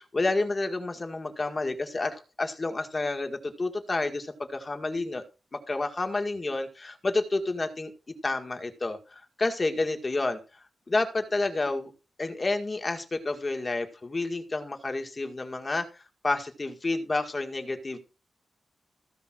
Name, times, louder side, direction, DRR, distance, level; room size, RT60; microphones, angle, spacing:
voice 1, 0.0-5.2 5.5-7.9 8.2-10.4 10.9-11.9 12.2-15.9 16.2-18.0, left 2 dB, 30° left, 5 dB, 1.9 m, -30 dB
15.5 x 5.2 x 6.2 m, 0.32 s
wide cardioid pair, 150°, 0 cm